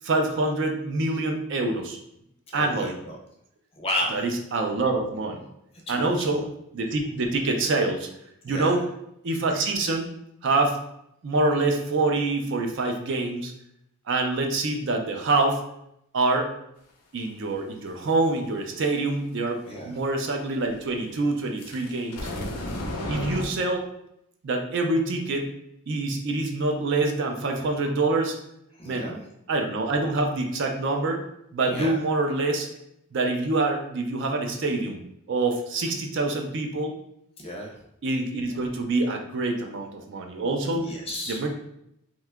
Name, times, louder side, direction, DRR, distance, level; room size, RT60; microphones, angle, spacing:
voice 1, 0.0-2.0 2.5-3.0 4.1-4.2 4.5-5.4 5.9-6.5 6.7-8.1 8.4-8.8 9.2-10.2 10.4-10.8 11.2-13.5 14.1-15.6 16.1-16.5 17.1-22.3 23.1-23.8 24.4-25.5 25.9-28.4 28.8-29.1 29.5-31.2 31.5-32.7 33.1-35.0 35.3-37.0 38.0-40.9 41.3-41.5, right 2 dB, 55° right, 3 dB, 0.4 m, -26 dB
voice 2, 2.5-3.2 3.8-4.2 5.9-6.4 8.5-8.7 19.6-20.0 28.7-29.2 31.7-32.0 37.4-37.8 40.8-41.5, left 1 dB, 25° left, 0 dB, 0.5 m, -33 dB
sound 1, 21.6-23.4, left 1 dB, 90° left, 0.6 m, -32 dB
2.8 x 2.2 x 3.4 m, 0.77 s
head